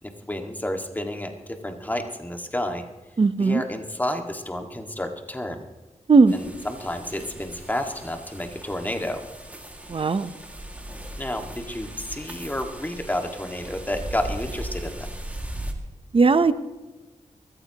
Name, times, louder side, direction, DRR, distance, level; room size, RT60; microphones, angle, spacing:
voice 1, 0.0-2.8 3.4-5.6 6.3-9.2 11.2-15.1, left 1 dB, 15° left, 4 dB, 1.9 m, -30 dB
voice 2, 3.2-3.6 6.1-6.3 9.9-10.3 16.1-16.5, right 4 dB, 45° right, 12 dB, 0.8 m, -17 dB
sound 1, 6.3-15.7, right 1 dB, 10° right, 2.1 m, -38 dB
22.5 x 14.5 x 3.0 m, 1.1 s
wide cardioid pair, 80°, 13 cm